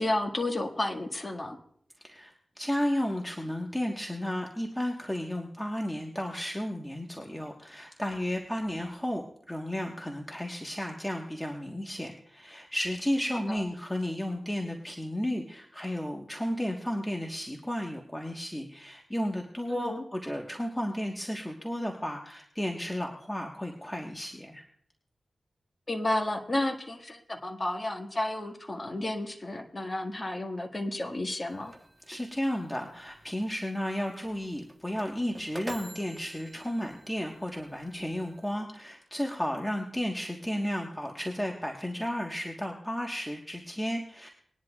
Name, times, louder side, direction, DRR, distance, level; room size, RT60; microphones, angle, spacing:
voice 1, 0.0-1.6 13.5-13.6 19.7-20.0 25.9-31.7, left 1 dB, 35° left, 3 dB, 1.8 m, -32 dB
voice 2, 2.0-24.6 32.1-44.3, equal, 10° left, 1 dB, 1.4 m, -33 dB
sound 1, 31.5-38.5, right 1 dB, 15° right, 1.2 m, -48 dB
20.5 x 10.5 x 2.4 m, 0.62 s
cardioid pair, 55°, 0 cm